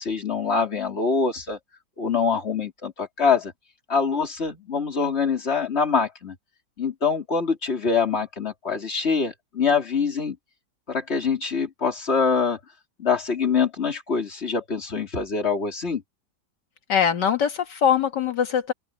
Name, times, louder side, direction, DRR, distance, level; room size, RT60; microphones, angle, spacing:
voice 1, 0.0-1.6 2.0-3.5 3.9-6.3 6.8-10.4 10.9-12.6 13.0-16.0, left 5 dB, 40° left, 3.2 m, -24 dB
voice 2, 16.9-18.7, left 8 dB, 80° left, 2.1 m, -22 dB
open air
omnidirectional pair, 1.8 m